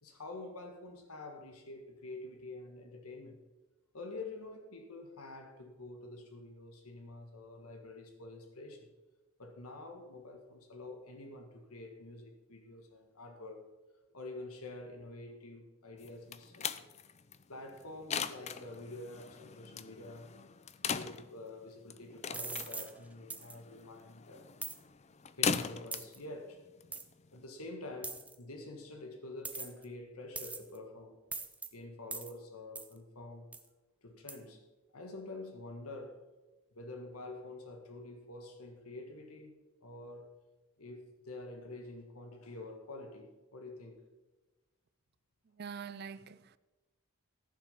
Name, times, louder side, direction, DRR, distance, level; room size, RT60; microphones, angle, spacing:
voice 1, 0.0-3.4 3.9-8.9 9.4-13.6 14.1-16.9 17.5-20.3 20.9-24.5 25.3-26.6 27.3-31.2 31.7-33.5 34.0-34.6 34.9-36.2 36.7-39.5 39.8-40.3 40.8-44.0, left 2 dB, 85° left, 1.6 m, -47 dB
sound 1, 16.0-27.5, left 6 dB, 30° left, 0.4 m, -40 dB
sound 2, 22.3-22.9 23.3-23.5 24.6-24.8 25.9-26.2 26.9-27.0 28.0-28.3 29.4-29.8 30.4-30.8 31.3-31.7 32.1-32.3 32.8-32.9 33.5-33.7 34.3-34.4, right 3 dB, 5° right, 0.7 m, -41 dB
voice 2, 45.5-46.6, right 6 dB, 45° right, 0.4 m, -45 dB
14.5 x 6.4 x 5.8 m
head